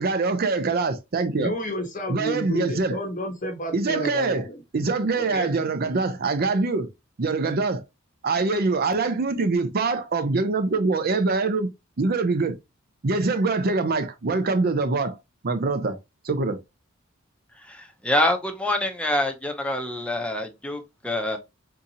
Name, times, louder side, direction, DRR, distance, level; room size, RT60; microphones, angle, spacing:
voice 1, 0.0-1.5 2.1-3.0 3.7-4.4 4.7-6.9 7.2-7.8 8.2-11.7 12.0-12.5 13.0-15.2 15.4-16.0 16.2-16.6, right 3 dB, 50° right, 0.5 m, -24 dB
voice 2, 1.4-4.6 5.1-5.5, equal, 40° left, 0.8 m, -31 dB
voice 3, 17.6-21.4, left 1 dB, 5° left, 0.6 m, -26 dB
3.7 x 2.8 x 2.7 m
head